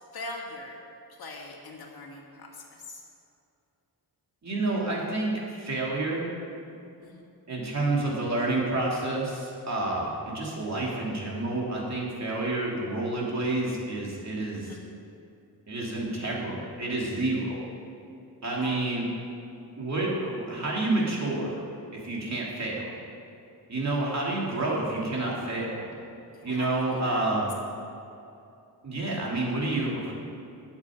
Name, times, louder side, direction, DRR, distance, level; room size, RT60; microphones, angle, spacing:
voice 1, 0.1-0.8 1.1-3.0 7.0-7.2 14.5-14.9 18.6-18.9 26.3-27.4, left 2 dB, 65° left, -1 dB, 2.0 m, -42 dB
voice 2, 4.4-6.3 7.5-14.7 15.7-17.6 18.4-19.1 19.8-21.5 21.9-22.9 23.7-25.8 26.4-27.5 28.8-30.1, right 2 dB, 45° right, -4 dB, 2.8 m, -29 dB
19.5 x 7.4 x 5.1 m, 2.7 s
wide cardioid pair, 140°, 39 cm